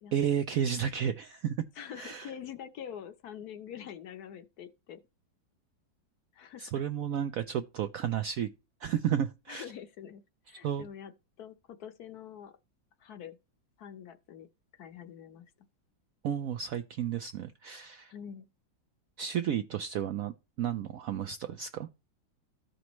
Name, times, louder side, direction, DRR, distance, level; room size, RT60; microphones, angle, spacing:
voice 1, 0.1-1.6 2.0-2.3 6.6-8.5 8.8-9.6 10.6-10.9 16.2-18.1 19.2-21.9, right 9 dB, 75° right, 0.8 m, -32 dB
voice 2, 1.7-5.0 6.3-6.7 9.5-11.1 11.4-12.5 13.0-13.4 13.8-14.5 14.7-15.5 18.1-18.5, left 9 dB, 65° left, 1.2 m, -45 dB
14.0 x 5.2 x 3.0 m
omnidirectional pair, 2.0 m